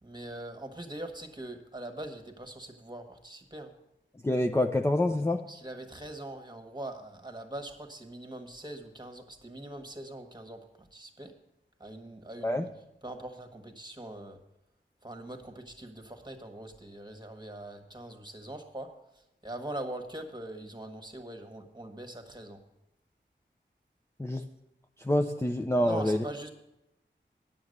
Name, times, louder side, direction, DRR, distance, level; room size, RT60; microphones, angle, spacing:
voice 1, 0.0-3.7 5.5-11.3 11.8-12.7 13.0-14.4 15.0-22.6 25.8-26.5, right 1 dB, 20° right, 5 dB, 1.5 m, -42 dB
voice 2, 4.2-5.4 12.4-12.7 24.2-24.4 25.0-26.2, left 1 dB, 15° left, 4 dB, 0.6 m, -26 dB
9.3 x 7.3 x 6.5 m, 0.88 s
wide cardioid pair, 45°, 20 cm